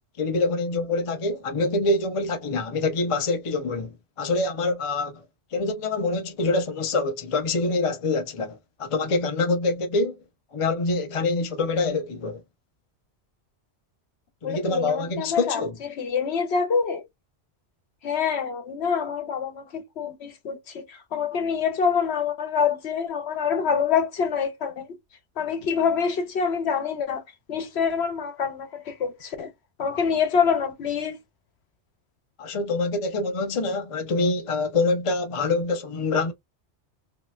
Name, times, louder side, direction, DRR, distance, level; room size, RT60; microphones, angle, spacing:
voice 1, 0.2-5.2 5.5-10.2 10.5-12.4 14.4-15.8 32.4-36.3, left 3 dB, 40° left, 0.5 m, -25 dB
voice 2, 14.4-17.0 18.0-24.9 25.4-27.2 27.5-29.5 29.8-31.2, left 6 dB, 70° left, 1.0 m, -26 dB
3.1 x 2.8 x 2.3 m
omnidirectional pair, 1.2 m